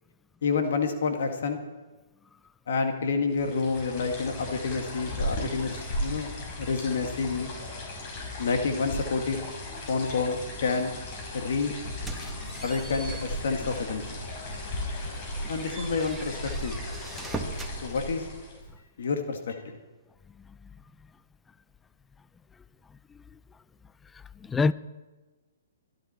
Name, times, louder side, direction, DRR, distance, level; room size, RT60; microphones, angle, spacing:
voice 1, 0.4-1.6 2.7-7.5 8.4-9.4 9.9-10.9 11.3-11.8 12.6-14.2 15.5-16.8 17.8-18.3 19.0-19.6, left 4 dB, 65° left, 2.0 m, -29 dB
sound 1, 3.3-18.7, left 1 dB, 40° left, 5.9 m, -36 dB
sound 2, 11.8-13.9 14.4-14.5 15.0-17.8, right 2 dB, 5° right, 1.8 m, -41 dB
voice 2, 24.4-24.7, left 4 dB, 10° left, 0.4 m, -26 dB
22.5 x 12.0 x 4.4 m
hypercardioid pair, 125°, 0 cm